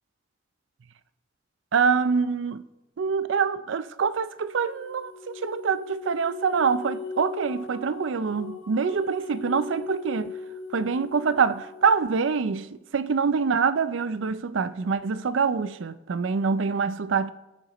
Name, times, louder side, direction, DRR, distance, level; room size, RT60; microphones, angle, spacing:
voice 1, 1.7-2.6 3.0-10.3 10.7-17.3, right 5 dB, 75° right, 0.5 m, -25 dB
sound 1, 4.4-12.2, left 4 dB, 80° left, 1.1 m, -39 dB
19.5 x 6.7 x 3.1 m
head